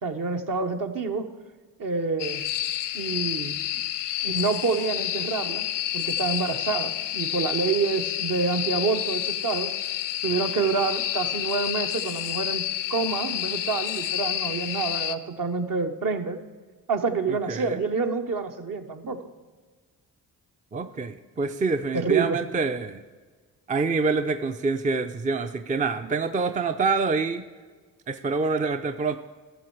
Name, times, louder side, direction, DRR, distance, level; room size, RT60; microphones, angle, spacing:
voice 1, 0.0-1.3 1.8-2.4 2.9-3.5 4.2-5.6 5.9-9.7 10.2-12.6 12.9-16.4 16.9-19.2 21.9-22.4, right 4 dB, 50° right, 5 dB, 1.1 m, -27 dB
sound 1, 2.2-15.2, left 13 dB, 80° left, 0.6 m, -29 dB
voice 2, 17.5-17.8 20.7-23.0 23.7-27.4 28.1-29.2, right 4 dB, 20° right, 9 dB, 0.5 m, -26 dB
12.5 x 7.1 x 4.7 m, 1.4 s
supercardioid pair, 50°, 41 cm